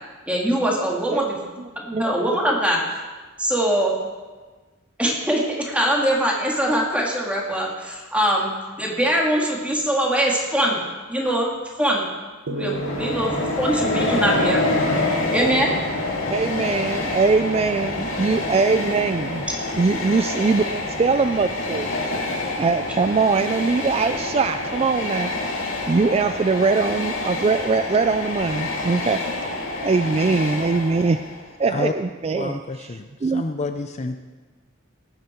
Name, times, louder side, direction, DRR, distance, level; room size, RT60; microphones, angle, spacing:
voice 1, 0.3-1.4 1.9-2.8 3.4-3.9 5.0-8.5 8.8-10.8 11.1-11.5 11.8-12.0 12.5-13.3 13.6-14.8 15.3-15.7, right 1 dB, 5° right, -2 dB, 2.3 m, -22 dB
sound 1, 12.5-15.9, right 1 dB, 70° right, 1.0 m, -36 dB
Train, 12.6-31.5, left 2 dB, 80° left, 2.3 m, -27 dB
voice 2, 16.3-19.5 19.7-21.9 22.6-25.3 25.9-29.2 29.8-31.2 31.6-33.4, right 4 dB, 30° right, 9 dB, 0.3 m, -22 dB
voice 3, 32.3-34.2, left 3 dB, 35° left, 6 dB, 0.5 m, -29 dB
18.5 x 9.2 x 4.5 m, 1.3 s
head